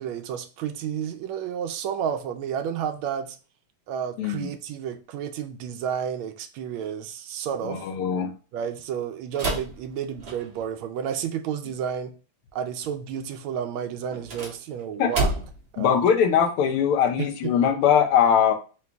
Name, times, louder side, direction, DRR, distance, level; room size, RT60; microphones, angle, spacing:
voice 1, 0.0-3.4 3.9-7.8 8.5-12.1 12.5-15.3 15.7-16.0 17.2-17.3, right 8 dB, 80° right, 7 dB, 1.3 m, -31 dB
voice 2, 4.2-4.5 7.6-8.3 15.0-15.1 15.8-18.5, left 8 dB, 85° left, 5 dB, 1.6 m, -21 dB
sound 1, 9.3-10.7 14.1-15.7, right 2 dB, 45° right, 0.7 m, -30 dB
3.9 x 2.9 x 3.4 m, 0.34 s
omnidirectional pair, 2.4 m